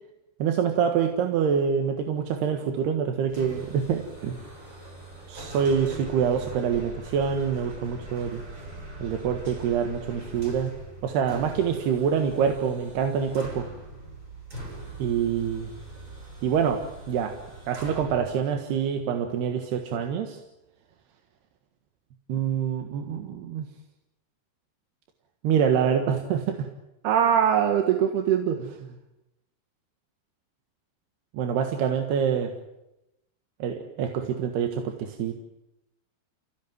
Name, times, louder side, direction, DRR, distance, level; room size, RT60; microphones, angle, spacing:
voice 1, 0.4-4.4 5.3-8.4 9.0-10.7 11.0-13.7 15.0-15.7 16.4-17.4 17.7-20.4 22.3-23.7 25.4-26.7 27.0-28.9 31.3-32.5 33.6-35.3, right 7 dB, 85° right, 5 dB, 3.7 m, -25 dB
sound 1, 3.3-18.3, right 2 dB, 30° right, 7.2 m, -41 dB
30.0 x 17.0 x 9.4 m, 0.90 s
omnidirectional pair, 4.5 m